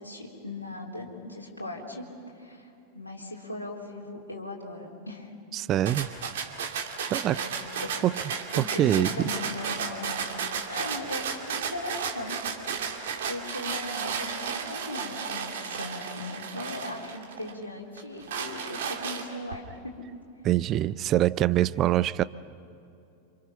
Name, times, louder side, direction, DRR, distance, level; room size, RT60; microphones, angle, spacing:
voice 1, 0.0-5.3 7.3-8.0 8.6-10.4 10.7-12.4 13.2-20.0, left 2 dB, 80° left, -3 dB, 3.9 m, -38 dB
voice 2, 5.5-6.1 7.1-7.4 8.0-8.2 8.6-9.3 20.4-22.2, right 13 dB, 35° right, 17 dB, 0.5 m, -24 dB
sound 1, 5.9-17.5 18.0-19.5, right 6 dB, 60° right, 2.5 m, -33 dB
29.0 x 27.0 x 5.8 m, 2.7 s
figure-of-eight pair, 90°, 0 cm